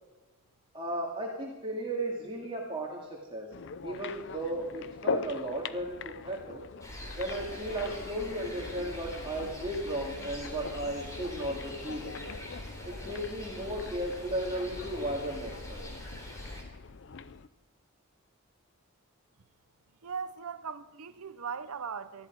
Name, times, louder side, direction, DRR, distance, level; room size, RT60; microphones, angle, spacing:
voice 1, 0.7-3.5 3.8-6.6 7.2-12.4 12.8-15.9, right 1 dB, 25° right, 2.2 m, -35 dB
sound 1, 3.5-17.5, left 5 dB, 55° left, 0.6 m, -41 dB
sound 2, 6.8-16.6, left 1 dB, 15° left, 3.4 m, -43 dB
voice 2, 20.0-22.3, right 6 dB, 75° right, 0.7 m, -39 dB
19.5 x 13.5 x 4.7 m
head